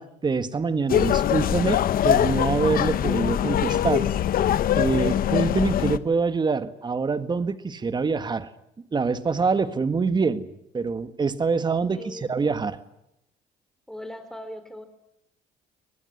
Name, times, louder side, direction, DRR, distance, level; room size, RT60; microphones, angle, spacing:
voice 1, 0.0-4.1 4.7-8.5 8.9-10.5 10.7-12.8, right 4 dB, 25° right, 12 dB, 1.7 m, -25 dB
sound 1, 0.9-6.0, left 10 dB, 60° left, 1.1 m, -22 dB
voice 2, 11.9-12.3 13.9-14.9, left 1 dB, 5° left, 9 dB, 4.1 m, -39 dB
24.0 x 20.0 x 9.9 m, 0.82 s
cardioid pair, 110°, 17 cm